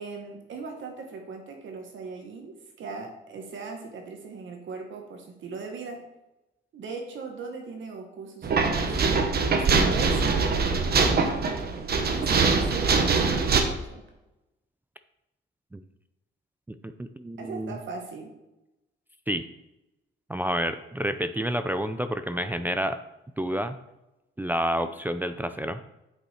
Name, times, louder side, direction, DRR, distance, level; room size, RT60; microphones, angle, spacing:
voice 1, 0.0-6.0 6.7-8.9 9.4-11.4 11.9-14.0 17.4-18.3, right 4 dB, 70° right, 3 dB, 1.4 m, -39 dB
sound 1, 8.4-13.6, right 4 dB, 50° right, 1.2 m, -23 dB
voice 2, 16.7-17.8 19.3-19.4 20.3-23.0 23.4-23.8 24.4-25.8, equal, 10° right, 8 dB, 0.4 m, -29 dB
9.1 x 5.5 x 4.3 m, 0.96 s
cardioid pair, 105°, 20 cm